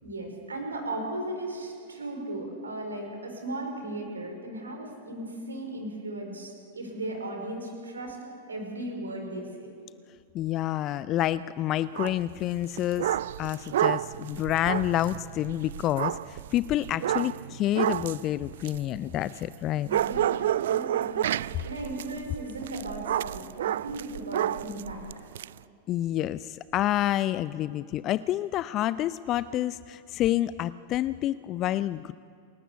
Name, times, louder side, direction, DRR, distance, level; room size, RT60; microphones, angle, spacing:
voice 1, 0.0-8.2 8.5-9.7 19.8-25.0, right 1 dB, 75° right, 3 dB, 4.8 m, -36 dB
voice 2, 10.3-19.9 25.9-32.1, left 13 dB, 35° left, 17 dB, 0.4 m, -28 dB
sound 1, 11.9-12.2 12.6-19.6 19.9-25.5, right 12 dB, 60° right, 0.4 m, -30 dB
28.0 x 13.0 x 8.3 m, 2.5 s
figure-of-eight pair, 90°, 0 cm